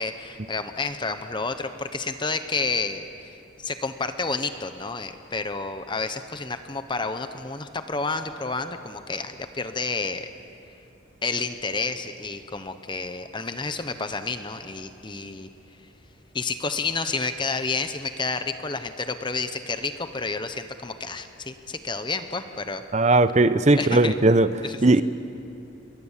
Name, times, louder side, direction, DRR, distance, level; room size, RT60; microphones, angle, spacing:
voice 1, 0.0-10.3 11.2-15.5 16.3-22.8 23.7-24.1 24.6-25.0, left 4 dB, 25° left, 9 dB, 0.9 m, -30 dB
voice 2, 22.9-24.5 24.8-25.0, right 2 dB, 35° right, 13 dB, 0.8 m, -18 dB
28.0 x 22.5 x 7.4 m, 2.7 s
head